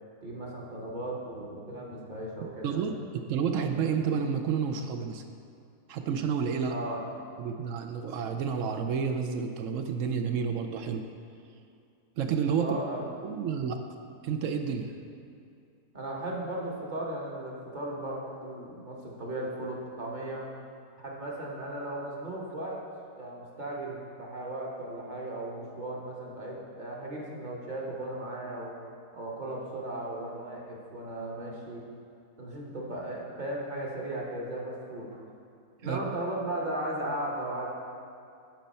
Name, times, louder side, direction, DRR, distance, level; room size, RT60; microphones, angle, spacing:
voice 1, 0.2-2.8 6.7-7.0 12.6-13.1 15.9-20.4 21.0-22.8 23.1-28.8 29.1-31.8 32.4-35.2 35.8-37.7, right 1 dB, 35° right, -3 dB, 1.1 m, -36 dB
voice 2, 2.6-5.2 5.9-6.7 7.4-11.0 12.2-12.7 13.2-13.8 14.2-14.9 35.8-36.0, right 6 dB, 70° right, 6 dB, 0.8 m, -30 dB
9.3 x 5.5 x 4.2 m, 2.4 s
omnidirectional pair, 1.7 m